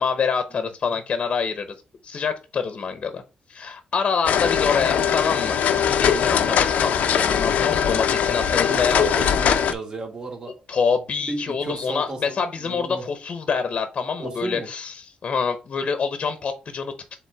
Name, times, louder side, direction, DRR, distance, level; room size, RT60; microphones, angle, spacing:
voice 1, 0.0-1.7 2.0-3.2 3.5-9.3 10.7-16.9, left 5 dB, 45° left, 0.9 m, -26 dB
voice 2, 0.6-1.0 8.6-10.5 11.3-13.0 14.2-14.7, right 2 dB, 35° right, 2.1 m, -33 dB
sound 1, 4.2-9.7, left 8 dB, 85° left, 0.7 m, -21 dB
7.5 x 3.7 x 3.4 m
cardioid pair, 135°, 3 cm